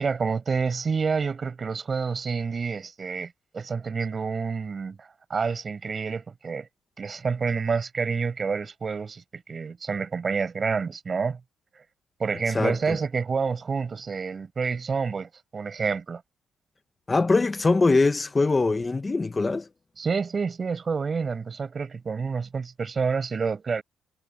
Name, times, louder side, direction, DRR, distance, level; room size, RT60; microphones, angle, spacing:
voice 1, 0.0-6.7 7.0-11.4 11.7-11.8 12.2-16.2 20.0-23.8, right 5 dB, 30° right, 4.9 m, -28 dB
voice 2, 17.1-19.7, left 3 dB, 15° left, 0.7 m, -22 dB
cardioid pair, 170°, 0 cm